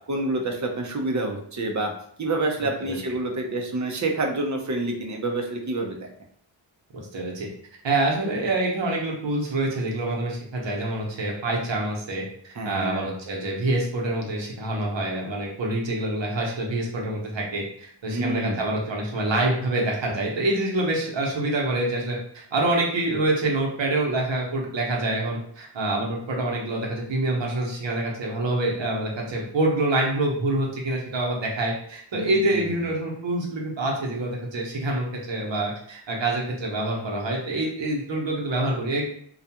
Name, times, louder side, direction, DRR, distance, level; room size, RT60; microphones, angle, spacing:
voice 1, 0.1-1.9 2.2-6.1 12.5-13.1 18.1-18.6 32.1-32.7, right 2 dB, 35° right, 2 dB, 0.6 m, -28 dB
voice 2, 6.9-7.5 7.8-12.2 12.6-39.0, right 2 dB, 65° right, -1 dB, 0.9 m, -26 dB
2.3 x 2.2 x 2.8 m, 0.63 s
cardioid pair, 45°, 48 cm